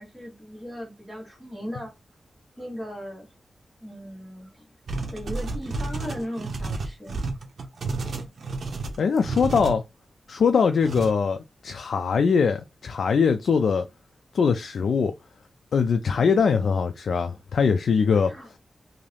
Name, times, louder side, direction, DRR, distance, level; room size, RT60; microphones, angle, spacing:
voice 1, 0.0-1.9 2.6-3.3 3.8-4.7 5.0-7.2 7.6-7.7 8.0-8.1 16.1-16.6 18.2-18.6, equal, 10° left, 1.4 m, -38 dB
sound 1, 4.9-9.8 10.8-11.1, right 3 dB, 70° right, 0.7 m, -31 dB
voice 2, 9.0-9.8 10.3-13.9 14.3-15.1 15.7-18.3, left 5 dB, 90° left, 0.3 m, -22 dB
2.7 x 2.5 x 3.3 m
wide cardioid pair, 160°, 0 cm